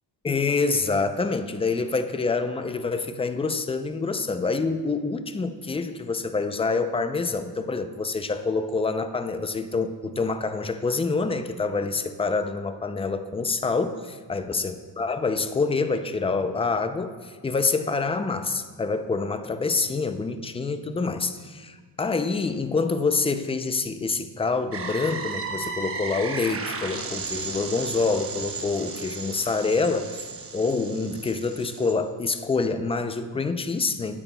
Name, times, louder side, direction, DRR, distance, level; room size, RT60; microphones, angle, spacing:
voice 1, 0.2-30.3 30.5-34.2, left 4 dB, 15° left, 9 dB, 0.4 m, -26 dB
sound 1, 24.7-31.9, right 4 dB, 30° right, 1.0 m, -34 dB
16.0 x 10.0 x 2.2 m, 1.5 s
cardioid pair, 115°, 42 cm